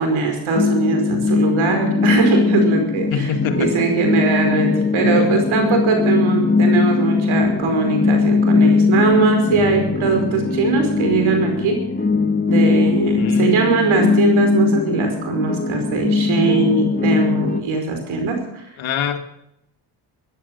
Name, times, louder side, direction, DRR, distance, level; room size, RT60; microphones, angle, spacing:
voice 1, 0.0-11.8 12.5-18.6, right 4 dB, 70° right, 5 dB, 5.0 m, -20 dB
sound 1, 0.6-17.6, left 4 dB, 20° left, 1.4 m, -19 dB
voice 2, 3.1-3.7 5.1-5.4 13.1-13.6 18.8-19.2, left 7 dB, 70° left, 6 dB, 1.9 m, -24 dB
15.0 x 10.5 x 7.0 m, 0.81 s
cardioid pair, 75°, 49 cm